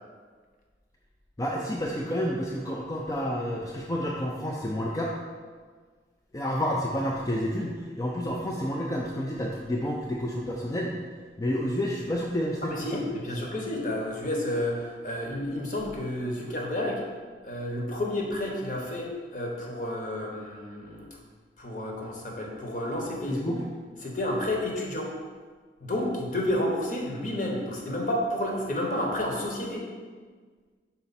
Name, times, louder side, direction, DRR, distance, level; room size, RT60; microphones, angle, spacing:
voice 1, 1.4-5.1 6.3-11.0 11.4-13.0 13.3-13.5 23.3-23.6, equal, 20° left, -2 dB, 0.4 m, -30 dB
voice 2, 12.6-17.0 17.4-21.1 21.6-23.5 24.0-25.1 25.8-29.9, left 1 dB, 45° left, -1 dB, 1.1 m, -30 dB
5.8 x 4.3 x 4.2 m, 1.5 s
head